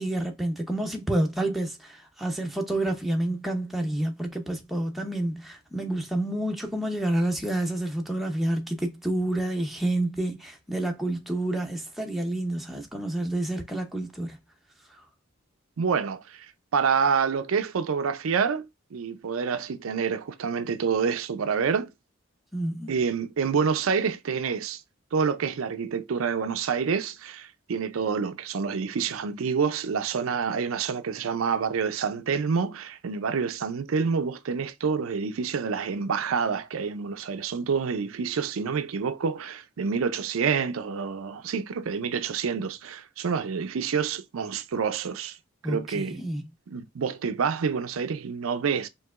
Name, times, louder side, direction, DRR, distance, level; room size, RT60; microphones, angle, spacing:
voice 1, 0.0-14.4 22.5-22.9 45.6-46.4, right 1 dB, ahead, 0.7 m, -29 dB
voice 2, 15.8-16.5 16.7-18.7 18.9-21.9 22.9-24.8 25.1-45.4 45.6-46.2 46.7-48.9, right 6 dB, 90° right, 0.5 m, -27 dB
4.6 x 2.8 x 2.4 m
head